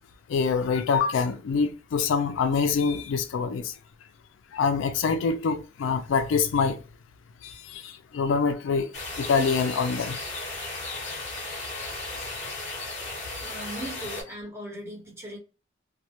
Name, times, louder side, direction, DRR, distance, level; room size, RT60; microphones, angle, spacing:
voice 1, 0.3-3.7 4.5-6.8 7.4-10.3 11.0-11.1 12.4-12.5, left 5 dB, 70° left, 0.3 m, -25 dB
sound 1, 8.9-14.2, left 2 dB, 35° left, 0.9 m, -35 dB
voice 2, 13.4-15.4, right 1 dB, 15° right, 0.9 m, -38 dB
2.2 x 2.1 x 2.8 m
head